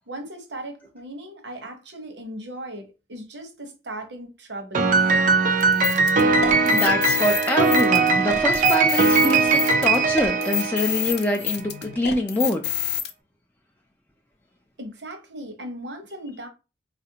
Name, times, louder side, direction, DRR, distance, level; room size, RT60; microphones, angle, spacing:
voice 1, 0.1-4.9 14.8-16.5, right 1 dB, 70° right, 1.0 m, -37 dB
Piano, 4.7-11.3, right 4 dB, 45° right, 0.5 m, -20 dB
sound 1, 5.6-13.1, left 9 dB, 60° left, 0.5 m, -28 dB
voice 2, 6.6-12.6, left 1 dB, 10° left, 0.3 m, -25 dB
4.0 x 2.5 x 2.8 m
head